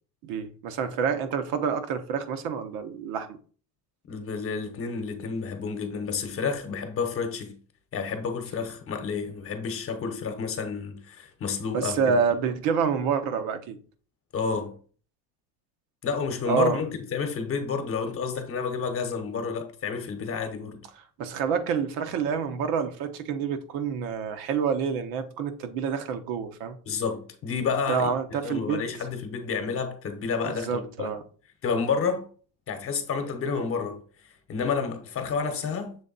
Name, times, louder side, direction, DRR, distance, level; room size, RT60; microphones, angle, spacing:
voice 1, 0.2-3.4 11.7-13.8 16.5-16.8 21.2-26.8 27.9-28.8 30.7-31.2, right 6 dB, 60° right, 1.0 m, -27 dB
voice 2, 4.1-7.6 7.9-12.2 14.3-14.8 16.0-20.8 26.8-31.2 31.6-32.3 32.7-36.0, left 5 dB, 35° left, 1.1 m, -30 dB
7.0 x 3.4 x 4.0 m
cardioid pair, 140°, 39 cm